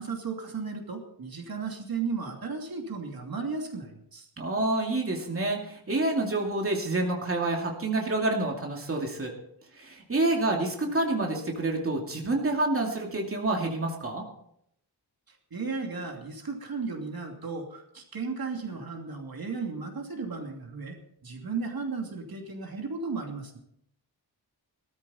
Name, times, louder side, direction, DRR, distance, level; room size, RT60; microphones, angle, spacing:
voice 1, 0.0-4.3 15.3-21.0 21.2-23.6, right 4 dB, 60° right, 2 dB, 2.8 m, -35 dB
voice 2, 4.4-9.3 9.7-14.2, right 2 dB, 35° right, 0 dB, 2.6 m, -28 dB
18.5 x 13.5 x 4.2 m, 0.73 s
wide cardioid pair, 135°, 40 cm